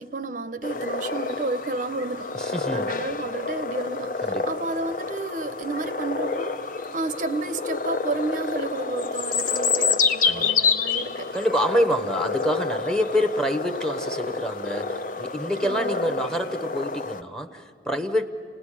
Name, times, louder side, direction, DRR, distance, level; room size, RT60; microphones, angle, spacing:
voice 1, 0.0-11.3 15.6-16.3, right 3 dB, 45° right, 12 dB, 0.6 m, -32 dB
sound 1, 0.6-17.2, left 4 dB, 45° left, 0.7 m, -28 dB
voice 2, 2.4-2.9 4.2-4.5 10.2-10.7 11.3-18.3, equal, 5° left, 10 dB, 0.8 m, -27 dB
29.0 x 18.5 x 9.9 m, 2.6 s
head